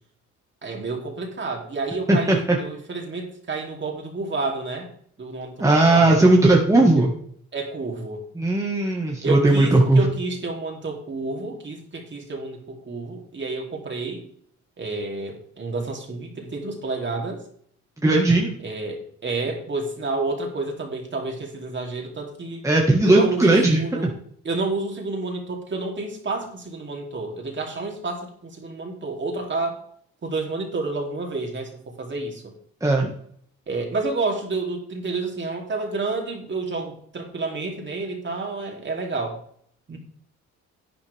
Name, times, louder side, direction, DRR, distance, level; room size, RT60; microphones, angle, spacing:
voice 1, 0.6-4.9 5.2-6.2 6.9-7.0 7.5-8.2 9.2-14.2 14.8-17.4 18.6-22.7 23.0-24.1 24.4-29.8 30.2-32.4 33.7-39.4 39.9-40.0, right 3 dB, 40° right, 1 dB, 3.0 m, -30 dB
voice 2, 2.1-2.6 5.6-7.1 8.3-10.0 18.0-18.5 22.6-24.1 32.8-33.1, right 2 dB, 10° right, -1 dB, 1.6 m, -17 dB
11.0 x 9.5 x 3.5 m, 0.63 s
cardioid pair, 90°, 30 cm